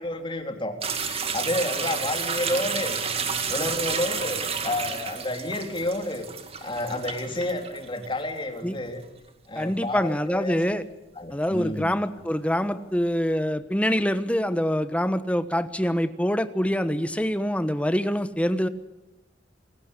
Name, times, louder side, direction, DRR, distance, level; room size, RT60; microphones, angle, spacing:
voice 1, 0.0-3.0 3.5-6.3 6.6-9.0 9.5-10.6 11.1-11.9, left 1 dB, 25° left, 4 dB, 3.4 m, -30 dB
sound 1, 0.8-8.2 8.6-8.7 9.6-9.7 11.4-11.5, right 6 dB, 30° right, 2.3 m, -31 dB
voice 2, 9.6-10.8 11.3-18.7, equal, 5° left, 11 dB, 1.2 m, -25 dB
27.0 x 18.5 x 8.4 m, 0.98 s
head